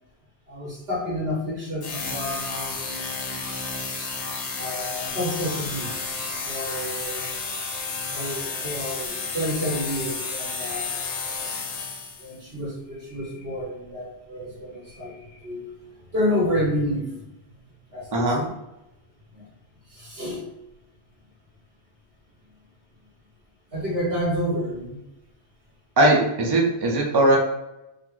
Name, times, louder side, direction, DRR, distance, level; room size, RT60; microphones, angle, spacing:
voice 1, 0.5-3.3 4.6-6.0 6.4-7.3 8.1-11.1 12.2-15.7 16.1-17.1 17.9-18.5 19.3-19.5 19.9-20.4 23.7-25.1, equal, 65° right, -5 dB, 1.7 m, -29 dB
sound 1, 1.8-12.4, left 4 dB, 90° left, 0.9 m, -31 dB
voice 2, 26.0-27.4, right 1 dB, 30° right, -2 dB, 0.4 m, -19 dB
3.8 x 2.0 x 3.0 m, 0.91 s
omnidirectional pair, 1.1 m